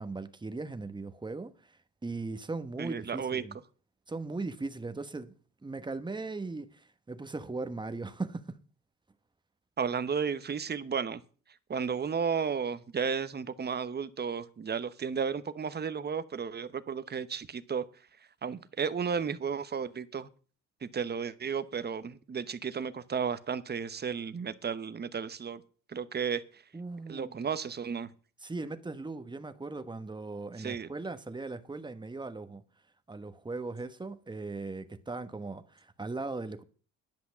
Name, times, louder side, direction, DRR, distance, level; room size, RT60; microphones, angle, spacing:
voice 1, 0.0-1.5 2.0-3.6 4.1-5.3 5.6-8.6 26.7-27.5 28.4-32.6 33.1-36.6, right 3 dB, 15° right, 1.2 m, -38 dB
voice 2, 2.8-3.4 9.8-11.2 11.7-17.8 18.4-20.3 20.8-25.6 25.9-26.4 27.1-28.1 30.6-30.9, right 6 dB, 35° right, 0.9 m, -33 dB
10.5 x 5.8 x 8.4 m
cardioid pair, 90°, 30 cm